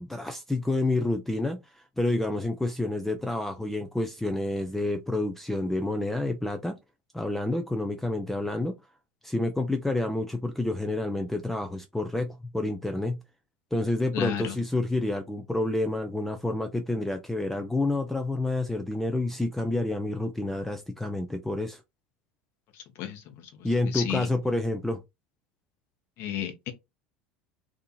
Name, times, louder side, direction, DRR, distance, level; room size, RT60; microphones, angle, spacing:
voice 1, 0.0-6.8 7.1-8.7 9.2-13.2 13.7-21.8 23.6-25.0, left 2 dB, 5° left, 0.4 m, -29 dB
voice 2, 14.1-14.6 22.7-23.7 23.9-24.3 26.2-26.7, left 10 dB, 50° left, 0.8 m, -33 dB
2.7 x 2.4 x 2.3 m
figure-of-eight pair, 75°, 5 cm